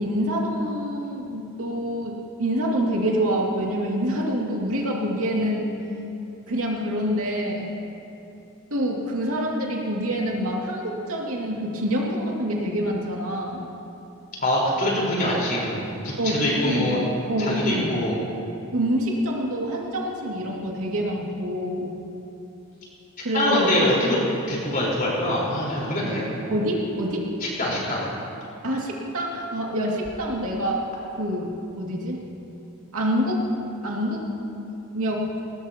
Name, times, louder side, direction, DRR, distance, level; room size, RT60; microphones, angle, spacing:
voice 1, 0.0-5.7 6.5-7.7 8.7-13.7 16.2-17.9 18.7-21.9 23.2-23.7 26.5-27.3 28.6-30.8 31.1-31.5 31.8-32.2 32.9-33.4 33.8-34.2 34.9-35.3, equal, 75° right, -2 dB, 2.4 m, -26 dB
voice 2, 14.4-17.0 17.4-18.1 23.3-24.2 24.5-26.3 27.4-28.0, left 1 dB, 40° left, -5 dB, 4.6 m, -24 dB
20.5 x 19.0 x 3.0 m, 2.7 s
head